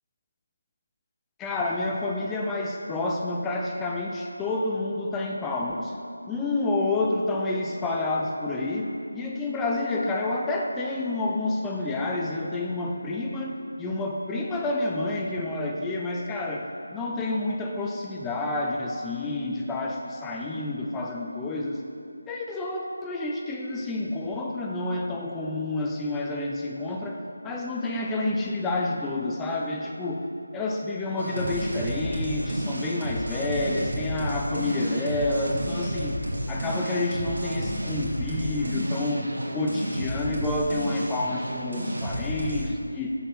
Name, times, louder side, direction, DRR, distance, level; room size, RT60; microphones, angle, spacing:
voice 1, 1.4-5.9 6.3-21.8 22.3-30.3 30.5-39.3 39.5-43.1, left 2 dB, 10° left, -1 dB, 0.4 m, -29 dB
sound 1, 31.2-42.6, equal, 70° right, 1.9 m, -31 dB
6.3 x 4.4 x 6.1 m, 2.5 s
figure-of-eight pair, 170°, 0 cm